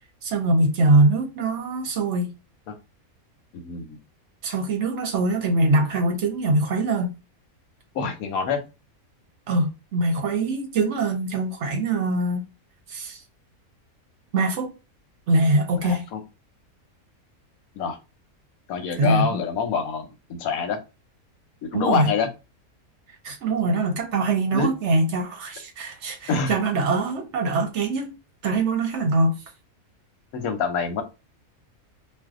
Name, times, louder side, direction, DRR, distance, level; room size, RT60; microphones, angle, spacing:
voice 1, 0.2-2.3 4.4-7.1 9.5-12.4 12.9-13.2 14.3-14.7 15.3-16.1 19.0-19.4 21.7-22.1 23.2-28.1 28.4-29.4, right 2 dB, 65° right, 0.8 m, -23 dB
voice 2, 3.5-4.0 7.9-8.6 15.8-16.2 17.8-18.0 18.7-20.1 20.4-20.8 21.7-22.3 24.5-24.7 26.3-26.5 30.3-31.0, left 6 dB, 85° left, 1.1 m, -25 dB
2.7 x 2.2 x 3.5 m
omnidirectional pair, 1.5 m